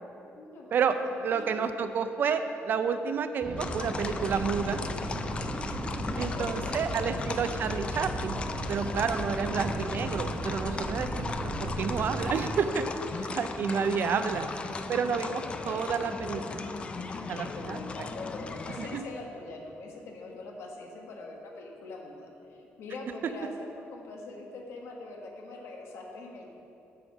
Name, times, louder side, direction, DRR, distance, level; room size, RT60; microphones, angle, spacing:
voice 1, 0.3-1.5 6.0-7.1 13.3-13.4 17.1-26.5, left 3 dB, 75° left, 1 dB, 1.3 m, -43 dB
voice 2, 1.2-4.8 6.2-8.4 8.7-12.9 13.1-14.5 14.9-16.7 17.3-17.8 18.8-19.0, right 6 dB, 45° right, 9 dB, 0.4 m, -30 dB
sound 1, 3.4-14.2, right 1 dB, 20° right, 1.0 m, -36 dB
sound 2, 3.6-19.0, left 4 dB, 25° left, 0.3 m, -37 dB
7.7 x 6.6 x 5.3 m, 2.8 s
cardioid pair, 180°, 5 cm